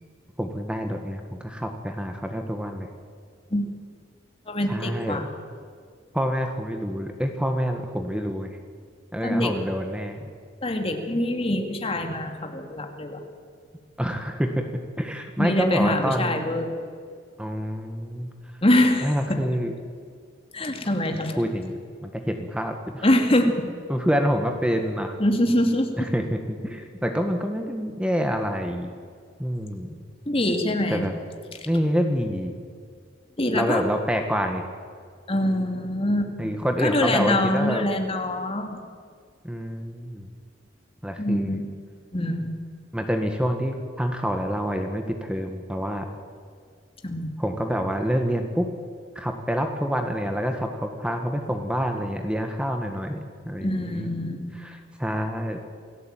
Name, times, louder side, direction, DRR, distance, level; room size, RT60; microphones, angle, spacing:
voice 1, 0.4-2.9 4.7-5.3 6.1-8.6 9.1-10.3 14.0-14.6 15.0-16.4 17.4-18.3 19.0-19.7 21.1-21.7 22.0-23.1 23.9-25.2 26.0-28.9 29.4-30.0 30.9-31.1 31.7-32.5 33.5-34.6 36.4-37.9 39.4-40.3 41.0-41.6 42.9-46.1 47.4-48.7 49.1-54.1 54.6-55.6, equal, 5° right, 4 dB, 1.6 m, -27 dB
voice 2, 4.5-5.3 9.2-9.5 10.6-13.2 15.4-16.7 18.6-19.4 20.5-21.4 23.0-23.7 25.2-26.1 30.3-31.1 33.4-33.8 35.3-36.5 36.8-38.8 41.2-41.6 42.1-42.5 47.0-47.4 53.6-54.6, left 1 dB, 30° left, 4 dB, 2.7 m, -24 dB
28.0 x 17.5 x 9.1 m, 2.1 s
head